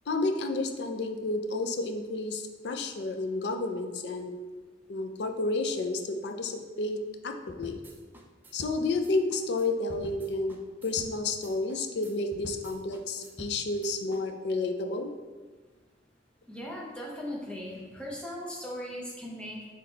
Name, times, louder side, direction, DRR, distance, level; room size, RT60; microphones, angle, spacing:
voice 1, 0.1-4.3 4.9-7.0 7.2-7.8 8.5-15.1, left 2 dB, 70° left, 6 dB, 0.4 m, -31 dB
sound 1, 7.5-14.2, right 1 dB, 10° right, 0.3 m, -47 dB
voice 2, 16.5-19.7, equal, 5° left, -4 dB, 0.7 m, -38 dB
4.1 x 3.2 x 3.9 m, 1.4 s
head